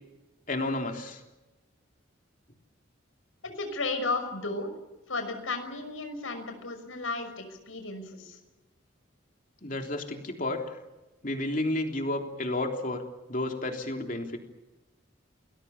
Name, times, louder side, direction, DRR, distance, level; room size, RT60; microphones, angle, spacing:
voice 1, 0.5-1.2 9.6-10.8 11.2-13.0 13.3-14.4, left 2 dB, 40° left, 3 dB, 3.5 m, -31 dB
voice 2, 3.6-4.7 5.1-8.4, left 3 dB, 90° left, 8 dB, 5.8 m, -34 dB
30.0 x 21.0 x 7.2 m, 1.1 s
head